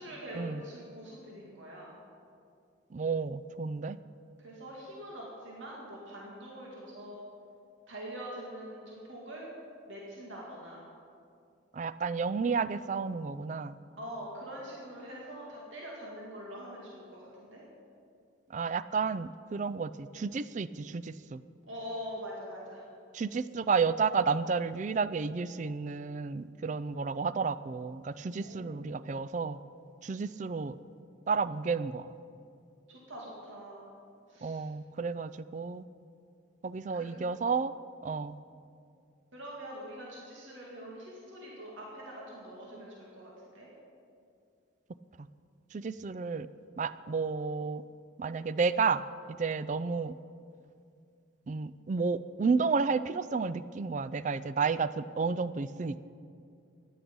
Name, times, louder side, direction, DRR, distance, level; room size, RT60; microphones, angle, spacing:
voice 1, 0.0-2.0 4.4-7.2 7.9-9.5 9.9-10.8 14.0-17.6 21.7-22.8 28.4-28.8 32.9-33.9 34.3-34.6 36.9-37.2 39.3-43.7, equal, 75° right, -4 dB, 2.4 m, -44 dB
voice 2, 2.9-4.0 11.7-13.8 18.5-21.4 23.1-29.6 30.0-30.8 31.3-32.1 34.4-35.8 36.6-37.7 38.0-38.4 45.2-45.3 45.7-46.5 46.8-47.8 48.2-49.0 49.4-50.1 51.5-56.1, right 5 dB, 40° right, 15 dB, 0.3 m, -31 dB
14.5 x 10.5 x 5.4 m, 2.4 s
head